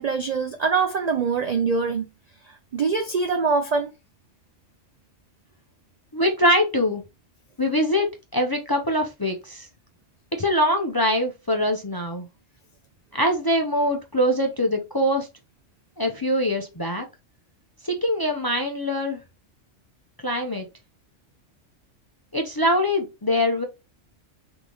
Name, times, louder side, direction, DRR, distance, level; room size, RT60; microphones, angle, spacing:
voice 1, 0.0-2.1 2.5-3.9, right 5 dB, 65° right, 0.4 m, -24 dB
voice 2, 6.1-7.0 7.6-9.7 10.3-12.3 13.1-15.3 16.0-17.0 17.8-19.2 20.2-20.7 22.3-23.6, equal, 30° left, 0.4 m, -23 dB
3.6 x 3.2 x 3.7 m
omnidirectional pair, 1.3 m